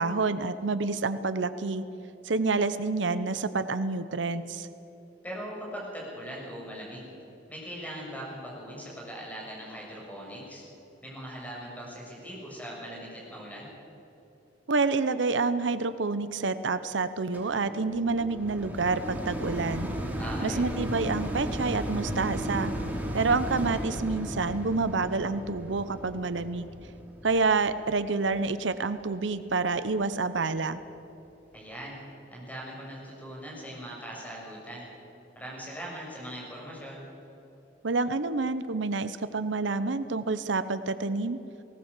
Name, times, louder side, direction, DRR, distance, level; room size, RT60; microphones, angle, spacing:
voice 1, 0.0-1.8 2.2-4.7 14.7-19.9 20.4-22.7 23.1-26.7 27.2-30.8 37.8-41.4, right 3 dB, 85° right, 13 dB, 0.8 m, -28 dB
voice 2, 5.2-7.1 7.5-10.6 11.0-13.7 20.2-20.6 31.5-32.0 32.3-34.9 35.3-37.0, equal, 10° left, -3 dB, 6.7 m, -40 dB
sound 1, 17.3-28.6 29.2-29.3, equal, 10° right, 3.3 m, -35 dB
19.0 x 18.0 x 8.3 m, 3.0 s
head